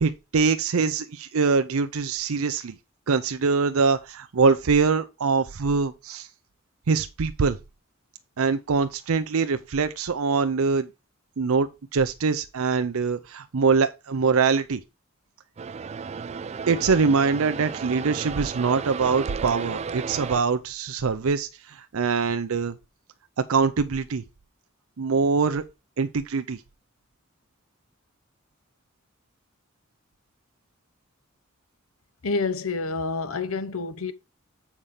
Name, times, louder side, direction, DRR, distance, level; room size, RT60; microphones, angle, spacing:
voice 1, 0.0-2.7 3.1-6.3 6.9-7.6 8.4-10.9 11.4-14.8 16.7-22.8 23.4-24.2 25.0-25.6 26.0-26.6, right 5 dB, 85° right, 0.6 m, -23 dB
sound 1, 15.6-20.4, right 5 dB, 30° right, 0.3 m, -34 dB
voice 2, 32.2-34.1, left 4 dB, 85° left, 0.9 m, -28 dB
7.3 x 5.4 x 4.8 m
head